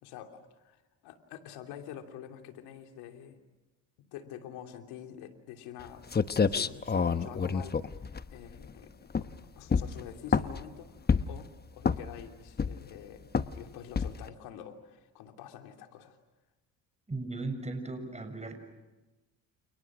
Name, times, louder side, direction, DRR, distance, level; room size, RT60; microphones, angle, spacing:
voice 1, 0.0-3.4 4.0-6.1 6.4-7.8 8.3-9.3 9.5-10.9 11.3-16.2, left 9 dB, 90° left, 5 dB, 3.1 m, -47 dB
sound 1, 5.8-5.9 6.1-8.7 9.1-9.4 9.7-10.7 11.1-11.4 11.8-12.2 12.6-13.0 13.3-13.6 14.0-14.3, left 5 dB, 25° left, 1.1 m, -28 dB
voice 2, 17.1-18.5, right 2 dB, 20° right, 7 dB, 6.9 m, -37 dB
30.0 x 29.5 x 6.2 m, 1.1 s
cardioid pair, 90°, 37 cm